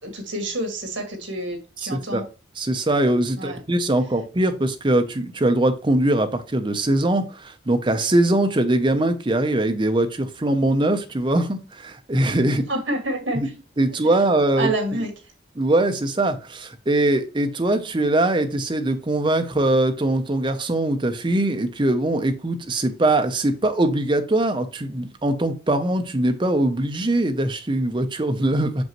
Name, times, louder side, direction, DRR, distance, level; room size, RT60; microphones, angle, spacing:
voice 1, 0.0-2.2 3.4-3.6 12.7-13.4 14.6-15.1, right 1 dB, 70° right, 1.9 m, -27 dB
voice 2, 1.8-2.2 2.6-12.6 13.3-13.5 13.8-14.7 15.6-28.8, right 1 dB, 25° right, 0.6 m, -22 dB
6.2 x 5.2 x 3.0 m
head